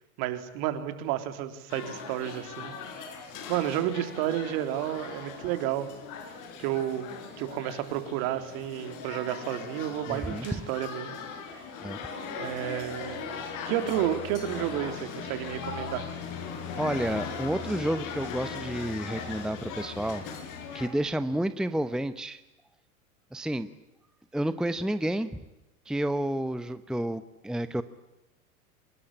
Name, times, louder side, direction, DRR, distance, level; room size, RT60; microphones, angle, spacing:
voice 1, 0.2-3.1 3.5-5.9 6.6-7.1 7.4-11.1 11.5-11.6 12.4-16.1, right 12 dB, 50° right, 9 dB, 3.6 m, -31 dB
sound 1, 1.7-20.9, left 5 dB, 45° left, 6.3 m, -39 dB
voice 2, 10.1-10.5 11.8-12.0 16.8-20.2 20.7-22.4 23.3-23.7 24.3-25.3 25.9-27.8, right 1 dB, ahead, 13 dB, 0.9 m, -30 dB
25.5 x 21.5 x 10.0 m, 0.98 s
figure-of-eight pair, 85°, 44 cm